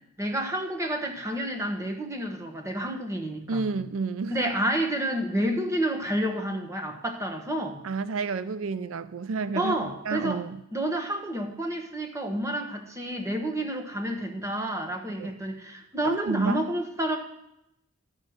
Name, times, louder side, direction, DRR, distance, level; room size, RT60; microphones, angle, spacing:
voice 1, 0.2-3.6 4.3-7.8 9.5-10.5 10.7-17.2, right 1 dB, 15° right, 3 dB, 1.2 m, -29 dB
voice 2, 3.5-4.4 7.8-10.6 15.2-15.3 16.0-16.6, right 4 dB, 85° right, 14 dB, 0.5 m, -30 dB
13.0 x 6.4 x 6.4 m, 0.82 s
head